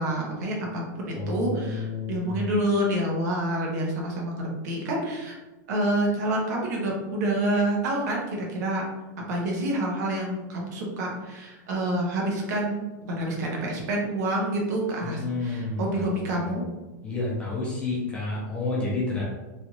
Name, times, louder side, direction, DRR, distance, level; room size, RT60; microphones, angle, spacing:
voice 1, 0.0-5.4 5.7-8.8 9.3-16.7, right 1 dB, 65° right, -2 dB, 1.0 m, -28 dB
voice 2, 1.1-2.5 15.0-16.6 17.0-19.2, left 3 dB, 10° left, -5 dB, 0.7 m, -30 dB
3.2 x 2.5 x 2.9 m, 1.1 s
supercardioid pair, 160°, 10 cm